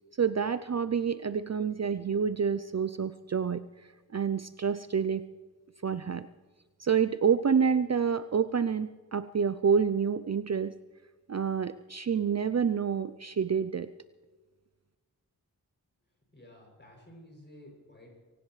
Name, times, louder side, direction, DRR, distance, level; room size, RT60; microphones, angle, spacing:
voice 1, 0.2-3.6 4.1-5.2 5.8-6.3 6.8-10.7 11.3-13.9, right 6 dB, 45° right, 13 dB, 0.5 m, -28 dB
voice 2, 16.3-18.1, left 1 dB, 30° left, -1 dB, 7.1 m, -52 dB
24.0 x 18.0 x 3.2 m, 1.3 s
wide cardioid pair, 80°, 38 cm